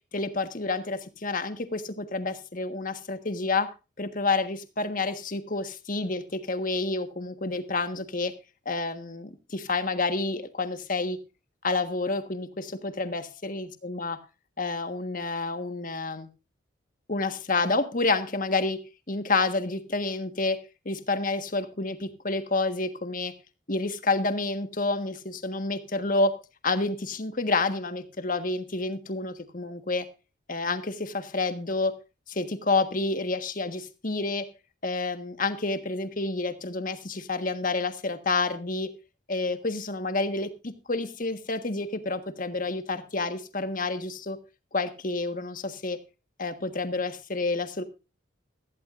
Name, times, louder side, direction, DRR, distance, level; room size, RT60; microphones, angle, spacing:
voice 1, 0.1-3.7 4.0-8.3 8.6-11.2 11.6-14.2 14.6-16.3 17.1-18.8 19.1-20.6 20.8-23.3 23.7-26.3 26.6-30.0 30.5-31.9 32.3-34.4 34.8-38.9 39.3-44.4 44.7-46.0 46.4-47.8, left 3 dB, 40° left, 8 dB, 1.5 m, -29 dB
16.5 x 15.0 x 2.6 m, 0.31 s
head